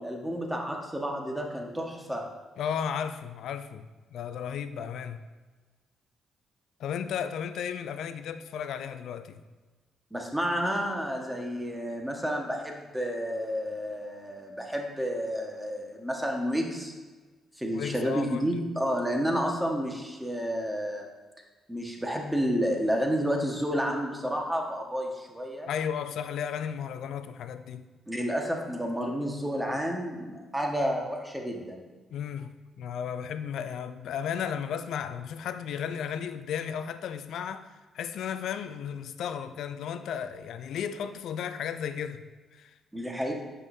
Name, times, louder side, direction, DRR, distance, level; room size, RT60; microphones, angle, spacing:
voice 1, 0.0-2.2 10.1-16.9 17.6-21.1 21.7-25.7 28.1-31.8 42.9-43.3, equal, 10° right, 1 dB, 1.5 m, -30 dB
voice 2, 2.6-5.2 6.8-9.4 17.7-18.6 25.7-27.9 32.1-32.5 32.8-37.7 37.9-42.2 42.5-42.7, left 8 dB, 70° left, 10 dB, 0.4 m, -34 dB
8.1 x 5.5 x 2.7 m, 1.3 s
hypercardioid pair, 45°, 0 cm